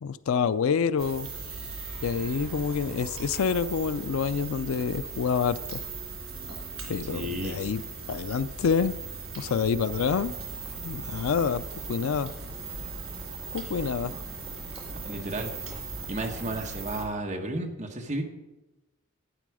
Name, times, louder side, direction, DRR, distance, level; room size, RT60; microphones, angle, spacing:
voice 1, 0.0-1.3 2.0-5.8 6.9-7.8 8.1-8.9 9.4-10.3 10.8-11.6 11.9-12.3 13.5-14.2, left 6 dB, 80° left, 15 dB, 0.4 m, -27 dB
sound 1, 1.0-17.0, right 4 dB, 80° right, 3.5 m, -38 dB
sound 2, 1.1-17.1, left 1 dB, 20° left, 2.1 m, -53 dB
voice 2, 7.1-7.6 14.9-15.5 16.1-18.2, right 1 dB, 35° right, 3 dB, 1.2 m, -33 dB
sound 3, 9.8-17.1, equal, 15° right, 1.3 m, -47 dB
11.5 x 9.2 x 4.9 m, 1.1 s
head